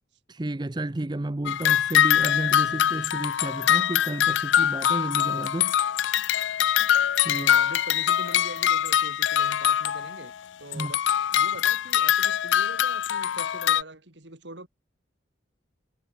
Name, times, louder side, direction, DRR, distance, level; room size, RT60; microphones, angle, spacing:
voice 1, 0.3-5.7 7.2-7.5 10.7-10.9, right 1 dB, 20° right, 0.6 m, -32 dB
sound 1, 1.5-10.3 10.7-13.8, left 10 dB, 75° left, 0.4 m, -23 dB
voice 2, 7.3-10.3 10.6-11.0 11.3-14.7, right 2 dB, 65° right, 3.4 m, -42 dB
head